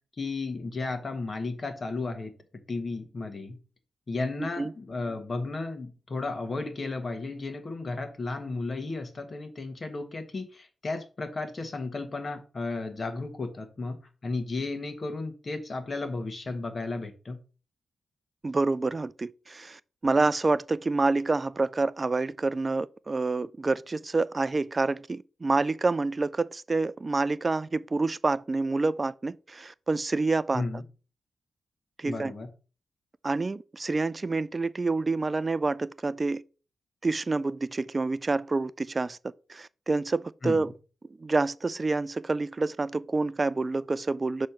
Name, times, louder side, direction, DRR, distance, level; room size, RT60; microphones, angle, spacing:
voice 1, 0.2-2.3 2.7-3.6 4.1-17.4 30.5-30.8 32.1-32.5 40.4-40.7, left 3 dB, 40° left, 1.3 m, -34 dB
voice 2, 4.4-4.7 18.4-30.6 32.0-32.3 33.2-36.4 37.0-39.2 39.5-40.7 41.2-44.5, right 3 dB, 30° right, 0.3 m, -28 dB
6.3 x 3.2 x 5.7 m
cardioid pair, 95°, 0 cm